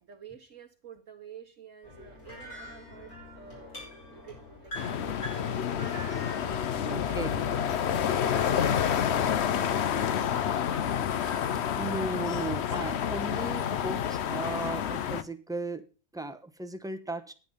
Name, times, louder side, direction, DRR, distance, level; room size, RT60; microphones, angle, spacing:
voice 1, 0.0-5.7 6.4-11.0, right 6 dB, 60° right, 2 dB, 1.5 m, -49 dB
sound 1, 1.8-11.8, equal, 85° left, 7.3 m, -45 dB
sound 2, 4.7-15.2, left 9 dB, 55° left, 0.9 m, -29 dB
voice 2, 6.9-7.4 11.8-15.8 16.1-17.3, right 2 dB, 5° right, 9 dB, 0.8 m, -36 dB
10.0 x 10.0 x 5.4 m, 0.35 s
omnidirectional pair, 1.5 m